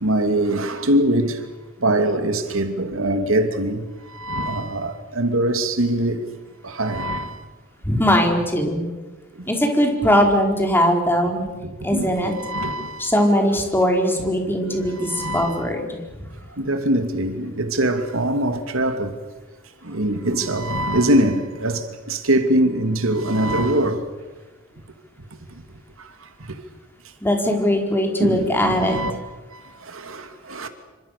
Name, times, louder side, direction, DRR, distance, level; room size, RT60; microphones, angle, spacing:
voice 1, 0.0-1.3 1.8-3.8 4.2-6.2 6.8-7.3 11.9-12.1 12.4-13.0 15.1-15.6 16.6-19.1 19.9-21.8 22.1-24.0 28.2-29.1 30.5-30.7, right 1 dB, 75° right, 2.8 m, -22 dB
voice 2, 7.9-8.9 9.5-11.5 11.8-12.3 13.0-16.0 27.2-29.0, equal, 10° left, 4.8 m, -20 dB
28.0 x 26.0 x 6.8 m
head